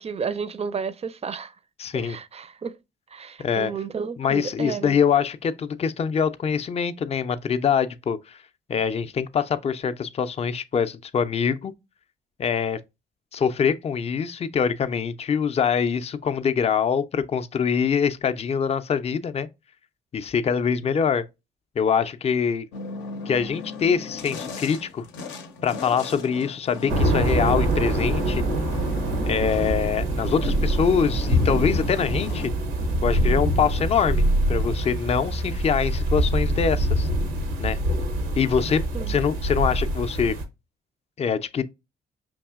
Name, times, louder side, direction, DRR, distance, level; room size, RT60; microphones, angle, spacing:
voice 1, 0.0-1.5 1.9-2.8 3.1-5.0 38.9-39.2, right 6 dB, 35° right, 0.4 m, -32 dB
voice 2, 1.8-2.2 3.4-3.7 4.2-8.4 8.7-11.7 12.4-12.8 13.3-19.5 20.1-21.2 21.8-22.7 23.3-25.1 25.6-28.4 29.3-32.5 33.0-37.1 37.6-37.8 38.4-38.8 39.1-40.3 41.2-41.6, left 7 dB, 35° left, 0.4 m, -24 dB
sound 1, 22.7-32.5, left 4 dB, 75° left, 0.6 m, -37 dB
sound 2, 26.9-40.4, right 1 dB, 85° right, 0.7 m, -24 dB
5.2 x 2.7 x 2.3 m
supercardioid pair, 50°, 19 cm